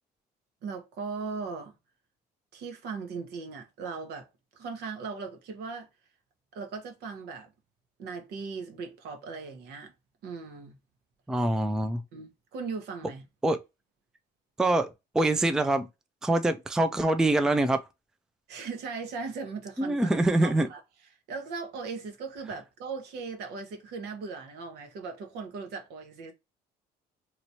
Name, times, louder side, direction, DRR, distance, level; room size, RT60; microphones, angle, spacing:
voice 1, 0.6-1.7 2.5-4.3 4.5-5.9 6.5-7.5 8.0-9.9 10.2-10.8 12.1-13.2 18.5-20.1 20.4-20.8 21.3-26.3, right 4 dB, 75° right, 1.1 m, -38 dB
voice 2, 11.3-12.0 13.4-13.6 14.6-14.9 15.1-15.9 16.2-17.8 19.8-20.7, right 2 dB, 5° right, 0.3 m, -24 dB
3.0 x 3.0 x 2.6 m
cardioid pair, 110°, 17 cm